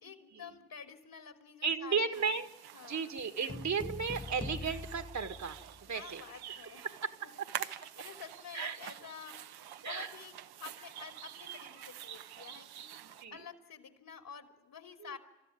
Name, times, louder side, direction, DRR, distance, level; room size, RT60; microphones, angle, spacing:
voice 1, 0.0-2.3 2.7-3.1 5.9-6.9 7.2-7.3 7.6-10.3 10.6-12.9 13.3-15.2, left 7 dB, 50° left, 5 dB, 2.9 m, -50 dB
voice 2, 1.6-2.5 2.9-6.2 6.8-7.3 8.5-8.8 9.8-10.1 13.2-13.4 15.0-15.2, right 5 dB, 40° right, 8 dB, 1.8 m, -35 dB
sound 1, 2.1-13.2, right 11 dB, 60° right, 1.1 m, -47 dB
sound 2, 3.5-6.0, left 3 dB, 10° left, 0.8 m, -43 dB
28.0 x 13.5 x 9.3 m, 1.1 s
hypercardioid pair, 45°, 43 cm